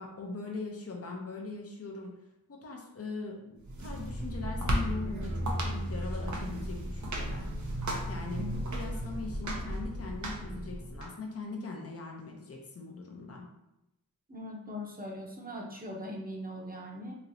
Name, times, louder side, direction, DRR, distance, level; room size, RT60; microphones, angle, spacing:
voice 1, 0.0-2.1 2.5-7.5 8.1-13.4, left 3 dB, 45° left, 0 dB, 0.7 m, -41 dB
sound 1, 3.6-11.1, equal, 55° right, 0.7 m, -34 dB
voice 2, 14.3-17.1, left 1 dB, 25° right, -2 dB, 0.9 m, -40 dB
3.0 x 2.8 x 2.7 m, 0.88 s
cardioid pair, 45°, 35 cm